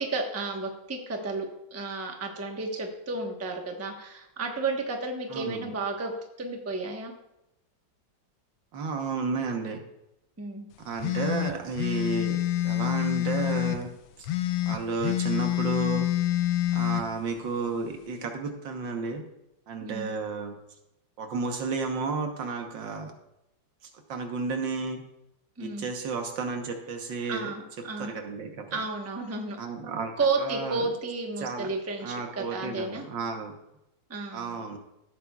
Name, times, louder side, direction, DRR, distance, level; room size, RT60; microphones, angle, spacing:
voice 1, 0.0-6.1 6.4-7.1 10.4-10.7 19.8-20.1 25.6-25.9 27.3-28.2 28.7-29.6 30.2-33.1 34.1-34.6, right 3 dB, 10° right, 2 dB, 0.8 m, -32 dB
voice 2, 5.3-5.7 8.7-9.8 10.8-12.4 12.6-13.9 14.2-14.3 14.7-16.1 16.7-19.2 19.7-20.5 21.2-23.1 24.1-25.0 25.6-27.5 28.0-28.8 29.6-30.1 30.4-30.8 31.4-31.7 32.0-33.5 34.3-34.8, right 4 dB, 75° right, 4 dB, 1.8 m, -32 dB
sound 1, 11.0-13.8 14.2-17.0, left 14 dB, 85° left, 1.4 m, -27 dB
16.0 x 8.5 x 2.4 m, 0.87 s
omnidirectional pair, 2.1 m